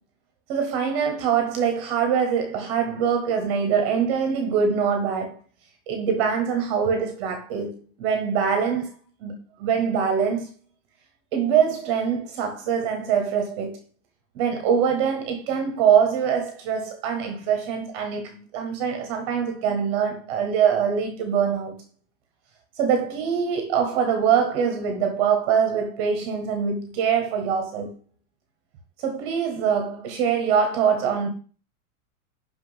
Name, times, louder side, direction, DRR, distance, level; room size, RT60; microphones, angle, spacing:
voice 1, 0.5-5.4 5.9-8.9 9.2-10.5 11.3-13.8 14.3-21.8 22.8-27.9 29.0-31.3, right 7 dB, 20° right, 0.7 m, -23 dB
5.7 x 5.6 x 5.5 m
supercardioid pair, 180°, 45 cm